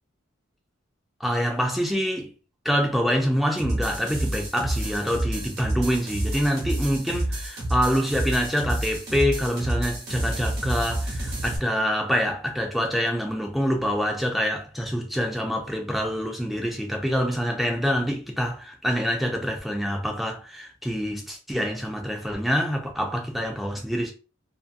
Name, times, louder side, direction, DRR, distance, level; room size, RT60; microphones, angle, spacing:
voice 1, 1.2-2.3 2.6-24.1, equal, ahead, 0.5 m, -26 dB
sound 1, 3.6-11.6, right 1 dB, 55° right, 1.1 m, -29 dB
2.6 x 2.6 x 2.5 m
head